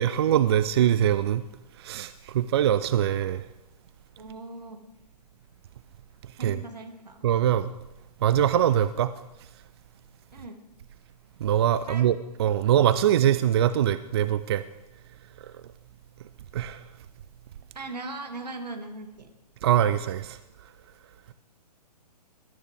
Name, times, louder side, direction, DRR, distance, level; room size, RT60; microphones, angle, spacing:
voice 1, 0.0-1.4 1.8-3.4 6.4-6.6 7.2-7.7 8.2-9.1 11.4-14.6 15.4-15.5 16.5-16.8 19.6-20.4, right 10 dB, 40° right, 0.4 m, -23 dB
voice 2, 4.2-4.9 6.4-7.2 10.3-10.6 11.9-12.1 17.7-19.3, right 2 dB, 75° right, 2.2 m, -39 dB
21.0 x 12.5 x 3.4 m
figure-of-eight pair, 125°, 21 cm